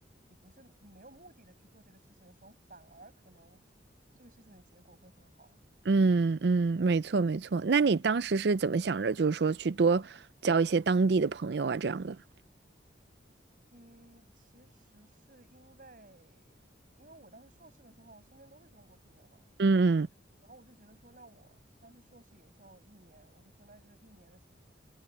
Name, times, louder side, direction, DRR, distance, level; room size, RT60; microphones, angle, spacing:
voice 1, 0.3-3.6 4.1-5.6 13.7-16.6 17.0-19.5 20.4-24.5, right 2 dB, 45° right, 7.1 m, -58 dB
voice 2, 5.9-10.2 10.4-12.2 19.6-20.1, right 4 dB, 65° right, 0.5 m, -26 dB
head